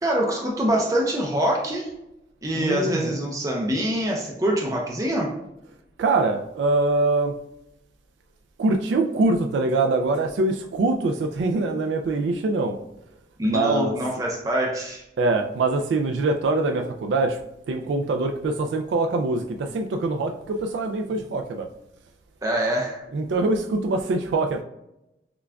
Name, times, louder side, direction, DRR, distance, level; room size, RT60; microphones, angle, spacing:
voice 1, 0.0-1.9 2.4-5.3 13.4-15.0 22.4-23.0, right 1 dB, 20° right, -1 dB, 0.5 m, -24 dB
voice 2, 2.5-3.2 6.0-7.4 8.6-12.8 13.5-14.0 15.2-17.4 17.7-21.7 23.1-24.6, right 2 dB, 90° right, 5 dB, 0.3 m, -23 dB
5.8 x 2.3 x 2.2 m, 0.87 s
head